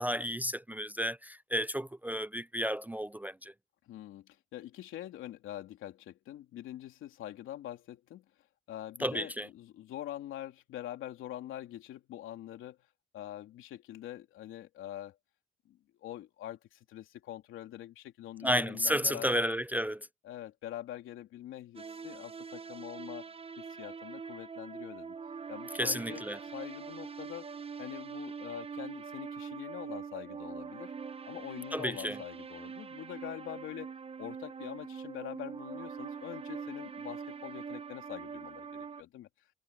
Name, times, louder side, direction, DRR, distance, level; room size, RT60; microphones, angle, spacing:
voice 1, 0.0-3.5 9.0-9.5 18.4-20.1 25.8-26.4 31.7-32.2, equal, 10° right, 0.4 m, -32 dB
voice 2, 3.9-8.3 8.7-12.8 13.1-15.2 15.6-19.4 20.2-23.3 23.6-25.2 25.5-26.2 26.5-27.5 27.8-30.9 31.2-39.3, left 12 dB, 85° left, 3.4 m, -44 dB
sound 1, 21.7-39.0, right 6 dB, 30° right, 0.9 m, -43 dB
cardioid pair, 90°, 20 cm